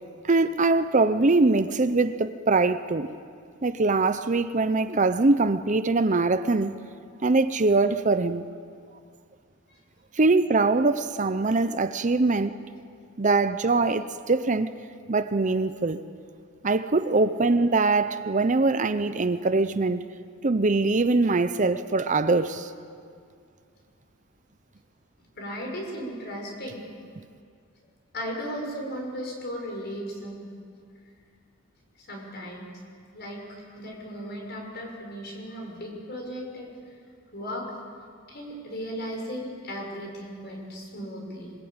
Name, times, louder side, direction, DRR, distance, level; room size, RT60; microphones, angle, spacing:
voice 1, 0.2-3.1 3.6-6.8 7.2-8.5 10.1-12.6 13.2-14.7 15.1-16.0 16.6-20.1 20.4-22.7, right 3 dB, 35° right, 0.7 m, -23 dB
voice 2, 25.3-26.8 28.1-30.5 32.0-32.7 33.1-37.0 37.3-37.7 38.3-41.5, equal, 50° left, 6.4 m, -36 dB
26.0 x 22.0 x 8.8 m
head